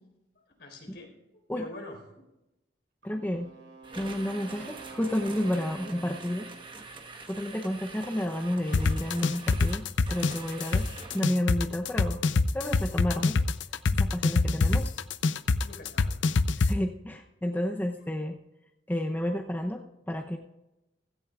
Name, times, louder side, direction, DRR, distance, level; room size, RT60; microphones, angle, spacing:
voice 1, 0.6-2.2 14.6-14.8 15.6-16.2 18.0-18.1, left 2 dB, 65° left, 2 dB, 4.3 m, -46 dB
voice 2, 3.0-3.5 4.0-6.5 7.3-10.9 11.1-12.2 12.5-13.4 13.9-14.9 16.6-18.4 18.9-20.4, left 1 dB, 10° left, 3 dB, 0.6 m, -31 dB
Wind instrument woodwind instrument, 3.0-6.9, right 5 dB, 85° right, 3.4 m, -48 dB
sound 1, 3.8-11.4, right 3 dB, 25° right, 1.2 m, -45 dB
sound 2, 8.7-16.7, left 4 dB, 85° left, 0.6 m, -24 dB
16.0 x 14.0 x 2.4 m, 0.94 s
head